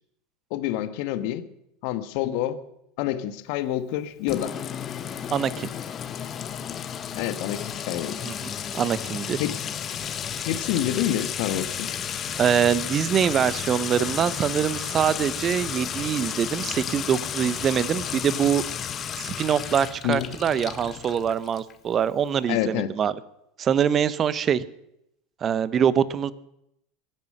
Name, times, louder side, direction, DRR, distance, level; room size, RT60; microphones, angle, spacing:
voice 1, 0.5-1.5 1.8-2.6 3.0-4.5 7.1-8.2 9.4-9.6 10.5-11.9 20.0-20.3 22.5-22.9, left 12 dB, 55° left, 10 dB, 1.4 m, -27 dB
Sink (filling or washing) / Trickle dribble / Fill (with liquid), 4.3-21.7, left 8 dB, 35° left, 1.4 m, -33 dB
voice 2, 5.3-5.7 8.2-9.4 12.3-18.6 19.2-23.1 23.6-24.6 25.4-26.3, right 8 dB, 35° right, 17 dB, 1.0 m, -24 dB
23.0 x 9.2 x 6.7 m, 0.80 s
figure-of-eight pair, 80°, 0 cm